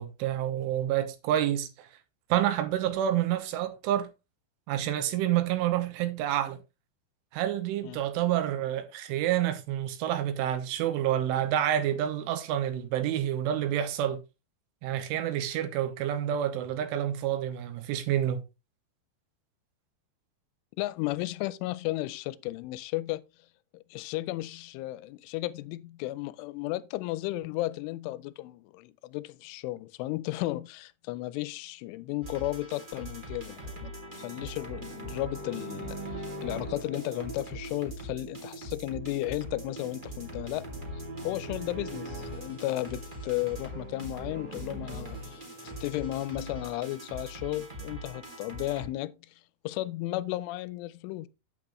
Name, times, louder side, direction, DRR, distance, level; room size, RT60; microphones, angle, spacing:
voice 1, 0.0-1.9 2.3-4.1 4.7-6.6 7.3-14.2 14.8-18.4, right 11 dB, 85° right, 3.5 m, -28 dB
voice 2, 20.8-23.2 23.7-40.6 40.9-45.4 45.8-49.3 49.6-51.3, left 17 dB, 85° left, 3.0 m, -34 dB
sound 1, 32.2-48.9, right 1 dB, 30° right, 0.8 m, -40 dB
8.6 x 8.3 x 3.1 m
omnidirectional pair, 5.5 m